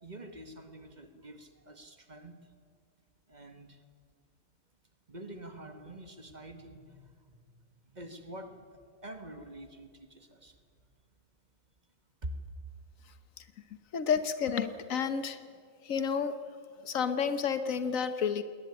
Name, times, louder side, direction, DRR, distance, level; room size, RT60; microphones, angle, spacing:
voice 1, 0.0-2.4 3.3-3.8 5.1-7.4 7.9-10.6 12.2-12.5, right 1 dB, 35° right, 7 dB, 1.7 m, -46 dB
voice 2, 13.9-15.4 15.8-16.4 16.8-18.4, left 6 dB, 85° left, 11 dB, 1.4 m, -30 dB
20.5 x 19.0 x 9.7 m, 2.1 s
omnidirectional pair, 1.4 m